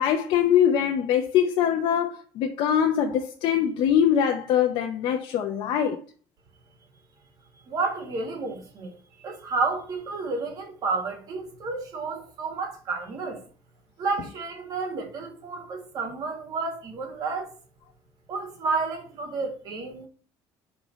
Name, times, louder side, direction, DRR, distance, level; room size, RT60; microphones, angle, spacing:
voice 1, 0.0-6.0, left 9 dB, 65° left, 0.7 m, -23 dB
voice 2, 7.7-13.4 14.0-17.5 18.3-20.1, right 4 dB, 45° right, 2.0 m, -31 dB
5.4 x 3.8 x 6.0 m
cardioid pair, 160°, 9 cm